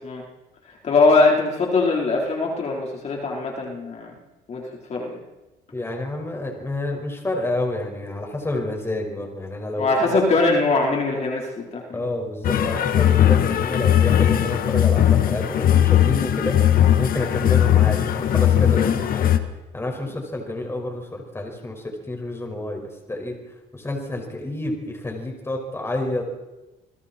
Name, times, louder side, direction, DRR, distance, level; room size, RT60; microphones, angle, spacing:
voice 1, 0.7-4.1 4.5-5.2 9.8-12.0, left 3 dB, 40° left, -2 dB, 4.5 m, -21 dB
voice 2, 5.7-10.2 11.9-19.4 19.7-23.4 23.7-26.2, left 2 dB, 15° left, 1 dB, 5.8 m, -29 dB
sound 1, 12.4-19.4, left 11 dB, 60° left, 1.8 m, -18 dB
29.5 x 21.5 x 4.6 m, 1.1 s
cardioid pair, 110°, 17 cm